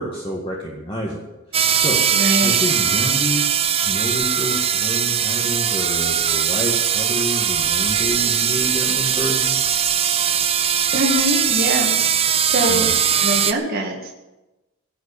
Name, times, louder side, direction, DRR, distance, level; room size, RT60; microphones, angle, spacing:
voice 1, 0.0-2.0 2.4-9.6 12.7-12.9, equal, 25° left, -3 dB, 1.9 m, -28 dB
sound 1, 1.5-13.5, right 8 dB, 30° right, 0.6 m, -20 dB
voice 2, 2.1-2.6 10.9-11.9 12.4-12.9 13.2-14.1, right 1 dB, 45° right, 1 dB, 2.0 m, -23 dB
16.5 x 7.8 x 8.6 m, 1.0 s
head